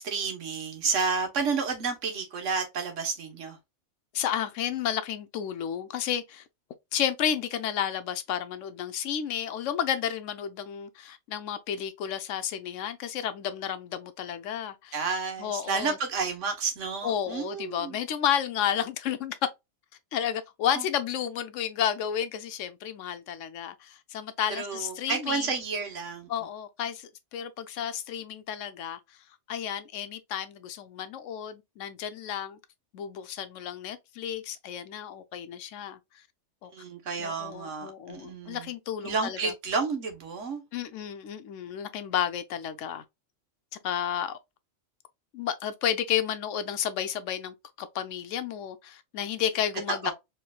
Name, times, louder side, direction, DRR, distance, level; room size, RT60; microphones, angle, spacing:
voice 1, 0.0-3.6 14.9-18.0 20.7-20.8 24.5-26.3 36.7-38.7 39.0-40.6 49.9-50.1, right 5 dB, 90° right, 1.4 m, -31 dB
voice 2, 4.1-6.4 6.9-15.0 15.4-16.0 17.0-19.4 20.1-25.5 26.3-29.0 29.5-32.6 32.9-36.0 36.6-36.7 37.2-39.5 40.7-43.0 43.8-44.4 45.3-50.1, left 9 dB, 90° left, 1.0 m, -32 dB
4.5 x 3.1 x 2.2 m
omnidirectional pair, 1.2 m